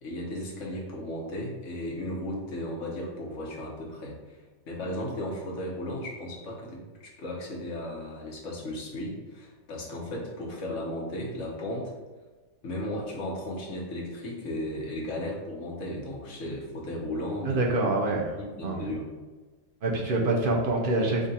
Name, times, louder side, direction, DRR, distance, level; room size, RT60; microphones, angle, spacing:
voice 1, 0.0-11.9 12.6-17.7 18.1-19.1, left 1 dB, 55° left, -2 dB, 1.2 m, -35 dB
voice 2, 17.4-18.3 18.6-18.9 19.8-21.3, right 2 dB, 55° right, -1 dB, 0.6 m, -26 dB
3.7 x 2.4 x 4.0 m, 1.3 s
omnidirectional pair, 1.6 m